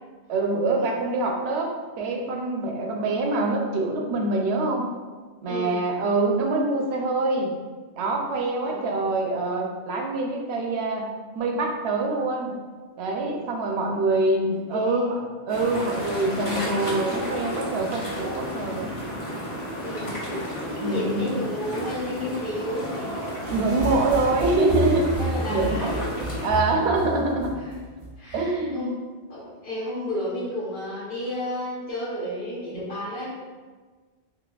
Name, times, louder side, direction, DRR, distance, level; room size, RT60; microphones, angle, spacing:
voice 1, 0.3-4.9 5.4-7.5 8.0-11.1 11.3-12.5 13.0-19.0 20.8-21.3 23.5-25.1 25.5-26.1 26.4-27.5 28.3-29.0 32.7-32.8, right 2 dB, 75° right, 1 dB, 0.8 m, -25 dB
voice 2, 5.5-5.8 8.6-9.2 14.7-15.0 19.8-20.2 20.8-23.1 25.2-26.0 27.6-27.8 28.2-28.9 29.3-33.3, left 1 dB, 70° left, -10 dB, 1.2 m, -32 dB
sound 1, 15.5-26.5, equal, 35° left, 0.6 m, -32 dB
sound 2, 23.5-28.5, right 2 dB, 40° right, 0.5 m, -31 dB
4.0 x 3.0 x 2.3 m, 1.4 s
omnidirectional pair, 1.1 m